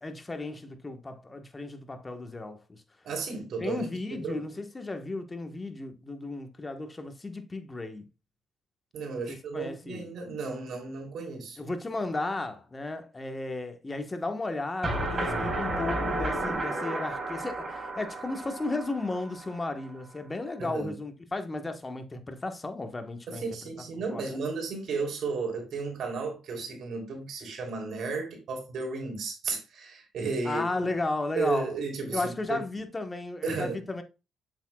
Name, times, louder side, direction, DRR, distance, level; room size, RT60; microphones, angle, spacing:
voice 1, 0.0-2.8 3.6-8.1 9.3-10.1 11.6-23.4 24.1-24.4 30.4-31.7 32.1-34.0, left 2 dB, 20° left, 1.3 m, -34 dB
voice 2, 3.0-4.4 8.9-11.6 20.6-20.9 23.3-30.6 31.4-32.6 33.4-33.8, right 4 dB, 70° right, 3.2 m, -33 dB
sound 1, 14.8-19.8, right 1 dB, 30° right, 4.5 m, -32 dB
7.8 x 7.2 x 2.4 m
cardioid pair, 90°, 0 cm